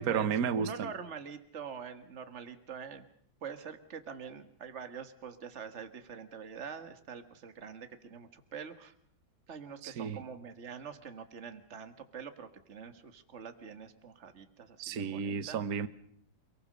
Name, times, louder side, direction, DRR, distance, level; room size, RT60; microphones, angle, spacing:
voice 1, 0.0-0.9 9.8-10.2 14.8-15.9, right 7 dB, 55° right, 1.5 m, -32 dB
voice 2, 0.5-3.1 3.4-8.9 9.5-15.6, right 6 dB, 40° right, 1.9 m, -45 dB
28.5 x 19.5 x 6.7 m
omnidirectional pair, 2.0 m